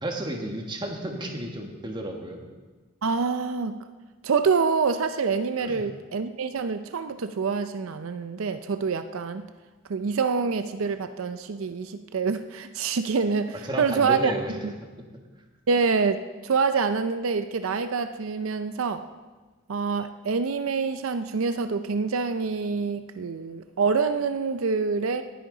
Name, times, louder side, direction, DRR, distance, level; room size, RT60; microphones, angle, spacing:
voice 1, 0.0-2.5 5.6-5.8 13.6-14.5 14.8-14.9, right 1 dB, 20° right, 2 dB, 1.4 m, -32 dB
voice 2, 3.0-3.8 4.2-9.5 9.9-14.3 14.6-14.7 15.7-19.1 19.7-25.2, right 5 dB, 75° right, 10 dB, 0.5 m, -26 dB
19.0 x 10.0 x 3.9 m, 1.3 s
head